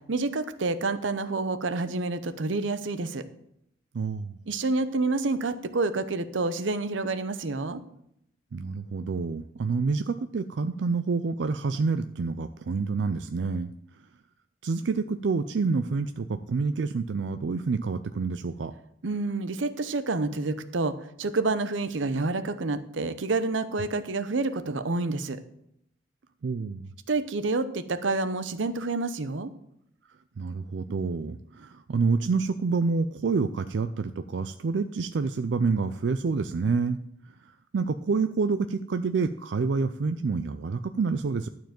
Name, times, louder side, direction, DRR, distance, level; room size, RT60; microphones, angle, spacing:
voice 1, 0.1-3.2 4.5-7.8 19.0-25.4 27.1-29.5, right 3 dB, 90° right, 12 dB, 0.8 m, -28 dB
voice 2, 3.9-4.4 8.5-13.7 14.6-18.7 26.4-26.9 30.4-37.0 37.3-41.5, right 4 dB, 65° right, 9 dB, 0.4 m, -28 dB
11.5 x 4.6 x 7.6 m, 0.75 s
head